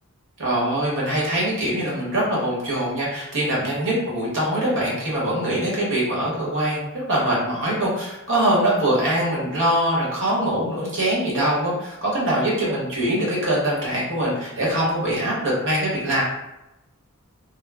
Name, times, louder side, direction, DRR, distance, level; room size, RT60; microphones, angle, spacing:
voice 1, 0.4-16.2, right 1 dB, 60° right, -5 dB, 1.0 m, -23 dB
2.0 x 2.0 x 3.4 m, 0.94 s
head